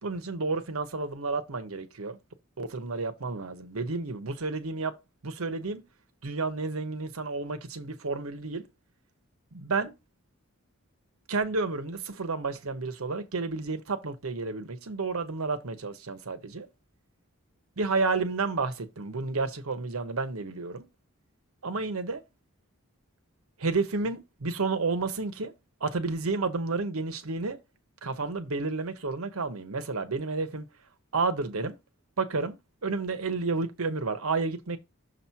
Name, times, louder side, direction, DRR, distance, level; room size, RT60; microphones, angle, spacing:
voice 1, 0.0-2.2 2.6-4.9 5.2-5.8 6.2-8.7 9.5-9.9 11.3-16.7 17.8-20.9 21.6-22.2 23.6-25.5 25.8-27.6 28.0-30.6 31.1-31.8 32.2-32.6 32.8-34.8, right 3 dB, 85° right, 0.9 m, -31 dB
6.5 x 3.0 x 5.6 m
head